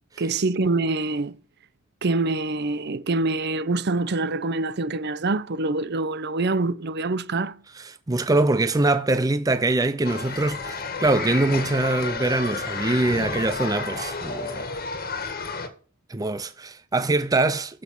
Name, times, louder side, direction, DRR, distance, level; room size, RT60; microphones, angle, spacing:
voice 1, 0.2-1.4 2.0-7.6, right 3 dB, 55° right, 0.7 m, -25 dB
voice 2, 7.8-14.7 16.1-17.8, right 2 dB, 15° right, 0.5 m, -23 dB
sound 1, 10.0-15.7, left 4 dB, 45° left, 1.8 m, -31 dB
13.0 x 6.2 x 7.0 m
head